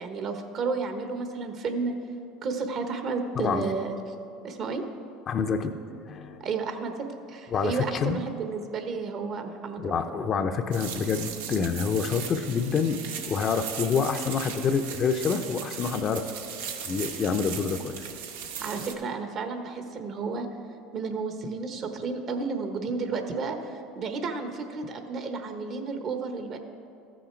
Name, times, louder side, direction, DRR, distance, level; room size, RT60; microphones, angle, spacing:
voice 1, 0.0-1.9 2.4-4.0 4.4-4.8 6.4-6.9 7.3-10.0 18.6-20.5 20.9-26.6, right 4 dB, 50° right, 6 dB, 1.1 m, -32 dB
voice 2, 3.4-3.7 5.3-5.8 6.1-6.4 7.5-8.2 9.8-16.3 16.9-17.9, left 5 dB, 40° left, 7 dB, 0.6 m, -27 dB
sound 1, 10.7-18.9, right 7 dB, 85° right, 0.8 m, -38 dB
14.0 x 6.4 x 4.5 m, 2.6 s
supercardioid pair, 90°, 0 cm